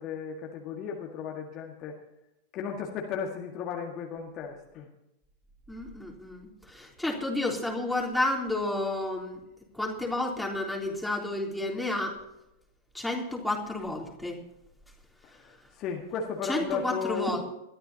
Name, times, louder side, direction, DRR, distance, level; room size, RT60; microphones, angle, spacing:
voice 1, 0.0-2.0 2.5-4.9 15.2-17.4, left 6 dB, 35° left, 0 dB, 1.9 m, -35 dB
voice 2, 5.7-9.4 9.7-12.2 12.9-14.4 16.5-17.4, left 2 dB, ahead, -1 dB, 3.4 m, -31 dB
21.5 x 13.5 x 2.9 m, 0.88 s
figure-of-eight pair, 90°, 0 cm